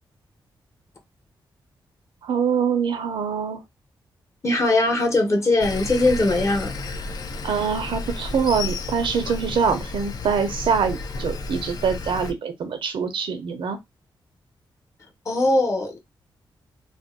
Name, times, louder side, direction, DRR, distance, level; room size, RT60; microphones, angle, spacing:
voice 1, 2.2-3.6 7.4-13.8, right 6 dB, 80° right, 0.7 m, -24 dB
voice 2, 4.4-6.7 15.3-16.0, left 2 dB, 35° left, 1.0 m, -20 dB
Sawing, 5.6-12.3, left 3 dB, 50° left, 0.5 m, -32 dB
2.5 x 2.1 x 3.7 m
wide cardioid pair, 130°, 9 cm